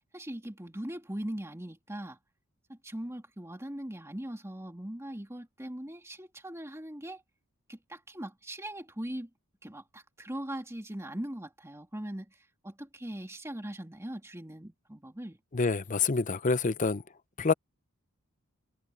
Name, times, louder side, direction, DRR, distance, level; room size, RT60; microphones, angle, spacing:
voice 1, 0.1-2.2 2.7-7.2 7.7-9.3 9.6-12.3 12.6-15.4, right 1 dB, 10° right, 2.6 m, -40 dB
voice 2, 15.5-17.0 17.4-17.5, left 4 dB, 35° left, 0.7 m, -27 dB
head